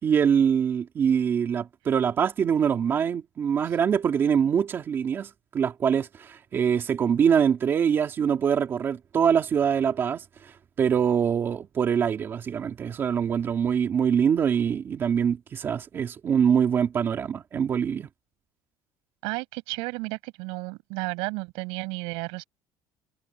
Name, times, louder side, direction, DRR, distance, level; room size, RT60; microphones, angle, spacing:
voice 1, 0.0-10.5 10.8-18.1, right 7 dB, 30° right, 3.1 m, -24 dB
voice 2, 19.2-22.4, right 28 dB, 90° right, 6.9 m, -33 dB
cardioid pair, 175°, 8 cm